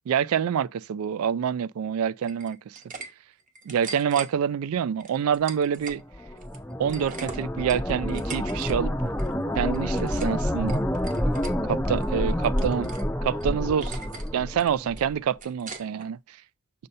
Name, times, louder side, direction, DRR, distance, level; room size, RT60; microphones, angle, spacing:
voice 1, 0.1-2.8 3.7-6.0 6.8-8.9 9.6-10.8 11.7-12.9 13.2-14.0 14.3-16.2, right 8 dB, 75° right, 0.3 m, -26 dB
sound 1, 2.2-3.1 3.4-4.3 5.0-6.0 6.4-8.7 9.0-9.3 9.7-10.4 10.7-11.5 12.0-13.1 13.4-13.5 13.8-14.3 14.6-16.1, right 4 dB, 35° right, 0.8 m, -41 dB
sound 2, 5.9-15.1, equal, 10° left, 0.4 m, -28 dB
6.5 x 2.8 x 5.3 m
head